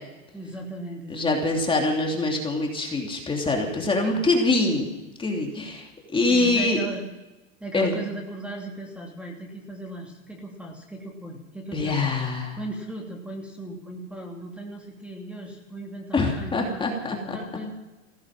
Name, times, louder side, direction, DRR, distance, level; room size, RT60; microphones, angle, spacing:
voice 1, 0.3-1.2 4.1-4.3 6.3-7.1 7.6-12.1 12.6-16.8 17.2-17.7, right 2 dB, 5° right, 0 dB, 2.8 m, -37 dB
voice 2, 1.1-4.9 5.2-6.8 7.7-7.9 11.7-12.6 16.1-17.4, left 2 dB, 15° left, 1 dB, 2.9 m, -24 dB
16.0 x 14.5 x 6.0 m, 1.1 s
supercardioid pair, 125°, 38 cm